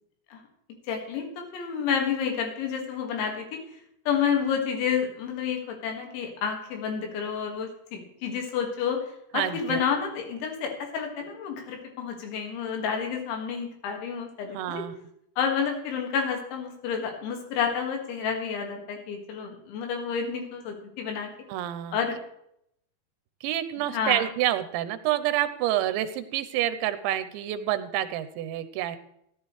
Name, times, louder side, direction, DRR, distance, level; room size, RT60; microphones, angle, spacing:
voice 1, 0.9-3.5 4.1-9.0 9.3-14.8 15.4-21.3 21.9-22.2 23.9-24.2, left 7 dB, 90° left, 3 dB, 4.4 m, -30 dB
voice 2, 9.3-9.8 14.5-15.0 21.5-22.0 23.4-29.0, right 12 dB, 85° right, 11 dB, 3.1 m, -28 dB
16.5 x 11.0 x 3.2 m, 0.74 s
omnidirectional pair, 5.2 m